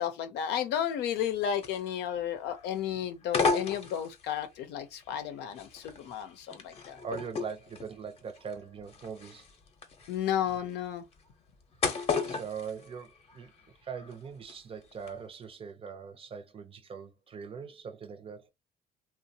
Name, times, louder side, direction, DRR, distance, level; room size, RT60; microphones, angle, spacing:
voice 1, 0.0-7.0 10.1-11.0, left 9 dB, 80° left, 0.6 m, -33 dB
sound 1, 1.2-2.2 2.5-2.8 3.2-4.4 5.0-13.7 13.9-14.6 14.9-15.1, left 4 dB, 35° left, 0.7 m, -35 dB
voice 2, 7.0-9.5 12.3-13.5 13.8-18.5, right 6 dB, 35° right, 0.5 m, -41 dB
2.9 x 2.0 x 2.7 m
cardioid pair, 110°, 17 cm